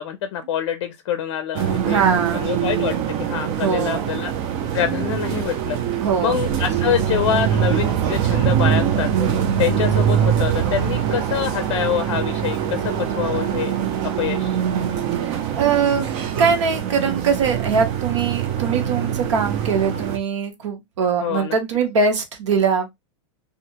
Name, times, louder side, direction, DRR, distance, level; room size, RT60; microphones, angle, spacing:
voice 1, 0.0-4.3 4.7-5.8 6.2-9.1 9.6-13.7 14.0-14.6 21.2-21.6, left 10 dB, 65° left, 0.5 m, -25 dB
sound 1, 1.5-20.2, right 9 dB, 45° right, 0.6 m, -23 dB
voice 2, 1.8-2.6 3.6-4.1 5.6-5.7 6.0-6.4 15.2-16.0 16.4-22.9, right 5 dB, 75° right, 0.9 m, -22 dB
2.7 x 2.4 x 2.8 m
hypercardioid pair, 130°, 15 cm